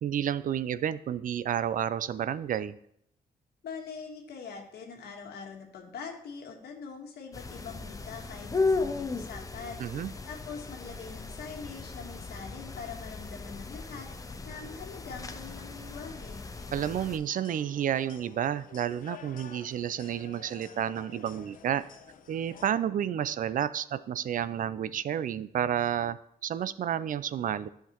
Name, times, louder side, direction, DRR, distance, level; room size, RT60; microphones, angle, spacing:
voice 1, 0.0-2.8 9.8-10.1 16.7-21.8 22.3-27.7, right 9 dB, 55° right, 15 dB, 0.4 m, -31 dB
voice 2, 3.6-14.1 14.4-16.4, left 5 dB, 75° left, 3 dB, 1.4 m, -43 dB
sound 1, 7.3-17.2, left 3 dB, 20° left, 0.6 m, -36 dB
sound 2, 16.6-22.7, left 7 dB, 55° left, 0.7 m, -51 dB
11.0 x 5.8 x 3.0 m, 0.74 s
cardioid pair, 105°, 17 cm